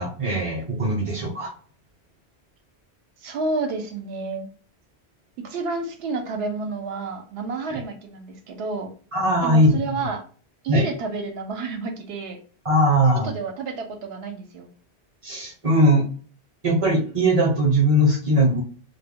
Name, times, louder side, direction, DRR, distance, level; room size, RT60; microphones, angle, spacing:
voice 1, 0.0-1.5 7.7-7.8 9.1-9.8 10.7-10.9 12.6-13.3 15.2-16.1 16.6-18.6, right 1 dB, 35° right, 0 dB, 0.7 m, -20 dB
voice 2, 3.2-4.5 5.4-8.9 9.4-10.2 10.6-12.4 13.2-14.7, right 3 dB, 70° right, 5 dB, 0.8 m, -30 dB
2.2 x 2.1 x 3.6 m, 0.42 s
omnidirectional pair, 1.1 m